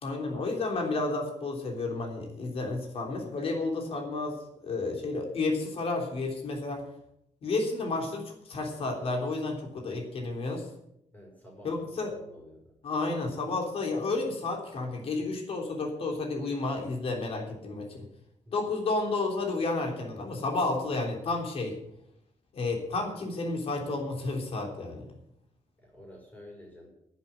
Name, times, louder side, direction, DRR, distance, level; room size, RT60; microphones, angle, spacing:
voice 1, 0.0-4.4 4.6-6.8 7.4-10.7 11.6-12.1 12.8-18.0 18.5-21.7 22.5-25.1, left 3 dB, 50° left, 2 dB, 3.4 m, -31 dB
voice 2, 11.1-12.7 18.4-18.5 25.8-26.9, equal, 15° left, -2 dB, 4.8 m, -50 dB
9.8 x 8.2 x 9.7 m, 0.78 s
wide cardioid pair, 165°, 13 cm